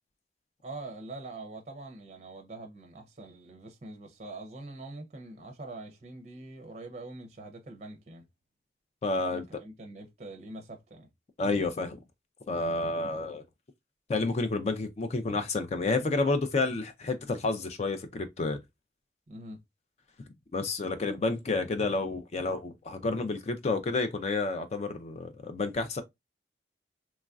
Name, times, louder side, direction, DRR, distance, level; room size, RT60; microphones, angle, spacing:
voice 1, 0.6-8.2 9.2-11.1 19.3-19.6, right 2 dB, 35° right, 0.5 m, -44 dB
voice 2, 9.0-9.4 11.4-12.0 12.5-13.4 14.1-18.6 20.5-26.0, left 3 dB, 35° left, 0.3 m, -30 dB
3.0 x 2.4 x 2.3 m
head